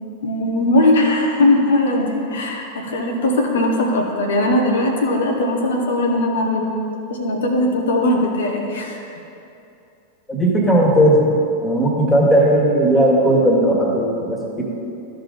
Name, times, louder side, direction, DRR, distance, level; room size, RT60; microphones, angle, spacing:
voice 1, 0.2-6.7 7.1-9.0, left 1 dB, 60° left, 2 dB, 1.1 m, -19 dB
voice 2, 10.3-14.6, right 1 dB, 15° left, -3 dB, 1.9 m, -16 dB
13.5 x 5.1 x 4.0 m, 2.7 s
figure-of-eight pair, 90°, 0 cm